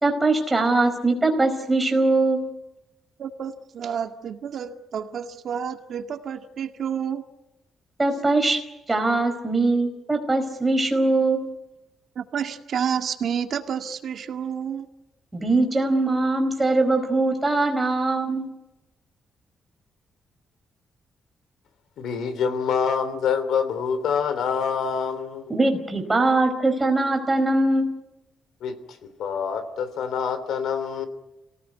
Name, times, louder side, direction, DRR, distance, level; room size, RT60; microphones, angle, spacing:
voice 1, 0.0-2.5 8.0-8.6 8.9-11.5 15.3-18.5 25.5-27.9, right 2 dB, 15° right, 4.7 m, -21 dB
voice 2, 3.2-7.2 12.2-14.9, right 8 dB, 55° right, 1.9 m, -30 dB
voice 3, 22.0-25.6 28.6-31.1, left 6 dB, 80° left, 3.1 m, -26 dB
29.5 x 18.5 x 9.4 m
cardioid pair, 155°, 0 cm